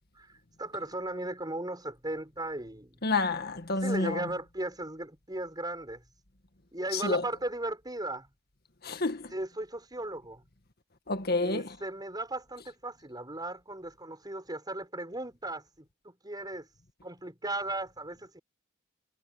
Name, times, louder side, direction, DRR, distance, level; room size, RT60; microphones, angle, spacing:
voice 1, 0.6-3.0 3.8-6.0 6.7-8.3 9.3-10.4 11.4-16.7 17.0-18.4, right 1 dB, 20° right, 6.7 m, -36 dB
voice 2, 3.0-4.2 6.9-7.2 8.8-9.3 11.1-11.7, left 3 dB, 50° left, 1.9 m, -29 dB
head